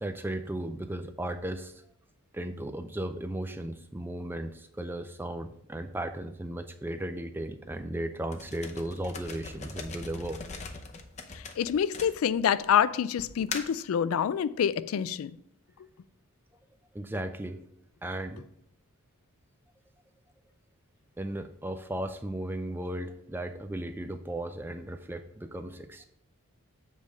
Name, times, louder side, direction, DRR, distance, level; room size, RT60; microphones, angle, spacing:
voice 1, 0.0-1.8 2.3-10.4 16.9-17.6 18.0-18.4 21.2-26.1, right 1 dB, 10° right, 0.4 m, -36 dB
sound 1, 8.3-12.6 13.2-13.8, left 4 dB, 30° left, 0.6 m, -40 dB
voice 2, 11.3-15.4, left 8 dB, 80° left, 0.3 m, -27 dB
7.4 x 3.4 x 6.3 m
head